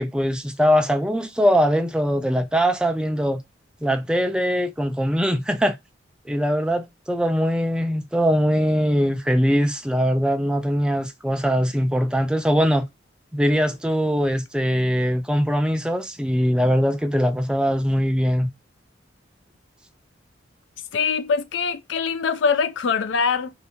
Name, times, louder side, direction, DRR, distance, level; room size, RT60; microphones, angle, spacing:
voice 1, 0.0-3.4 3.8-5.8 6.3-12.9 13.3-18.5, equal, 5° right, 0.3 m, -21 dB
voice 2, 20.9-23.5, left 5 dB, 75° left, 0.4 m, -23 dB
2.8 x 2.6 x 3.4 m
head